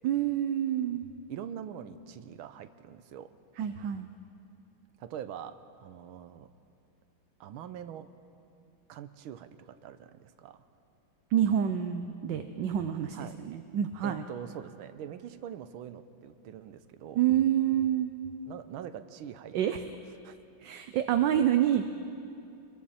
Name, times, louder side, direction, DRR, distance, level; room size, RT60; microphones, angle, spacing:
voice 1, 0.0-1.0 3.6-4.1 11.3-13.2 13.4-14.2 17.1-18.1 19.5-19.8 20.6-21.8, right 10 dB, 70° right, 8 dB, 1.3 m, -27 dB
voice 2, 1.3-3.3 5.0-6.5 7.4-8.1 8.9-10.7 13.1-13.4 14.0-17.2 18.5-19.8 20.2-20.4, right 9 dB, 85° right, 11 dB, 1.6 m, -43 dB
28.0 x 22.0 x 4.3 m, 2.7 s
omnidirectional pair, 2.2 m